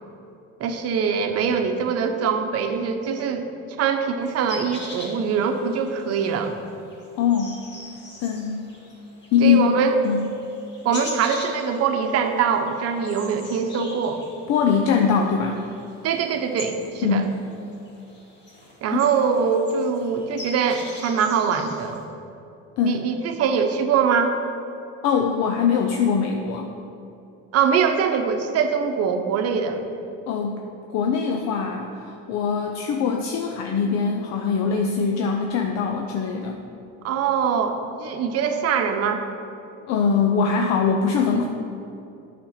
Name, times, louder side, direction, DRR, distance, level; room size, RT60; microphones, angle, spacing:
voice 1, 0.6-3.5 3.8-6.6 9.4-9.9 10.8-14.2 16.0-17.3 18.8-22.0 22.8-24.3 27.5-29.8 37.0-39.2, right 6 dB, 55° right, 6 dB, 0.8 m, -23 dB
sound 1, 4.2-22.0, left 2 dB, 35° left, 2.0 m, -42 dB
voice 2, 7.2-7.6 8.2-8.7 9.3-9.7 10.0-10.3 14.5-15.6 17.0-17.3 22.8-23.0 25.0-26.7 30.3-30.6 30.9-36.6 39.9-41.5, left 6 dB, 60° left, 2 dB, 0.7 m, -22 dB
8.7 x 5.1 x 5.8 m, 2.7 s
cardioid pair, 120°, 30 cm